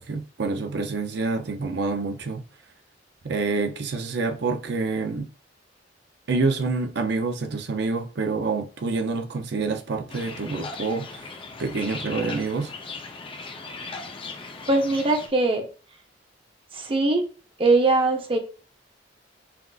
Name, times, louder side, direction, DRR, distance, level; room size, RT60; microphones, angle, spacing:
voice 1, 0.0-2.4 3.2-5.3 6.3-11.3 11.6-12.7, right 3 dB, 65° right, 0.6 m, -27 dB
sound 1, 10.1-15.3, left 4 dB, 30° left, 0.5 m, -38 dB
voice 2, 14.7-15.7 16.7-17.2 17.6-18.4, right 2 dB, 30° right, 0.7 m, -21 dB
5.8 x 2.5 x 2.4 m
head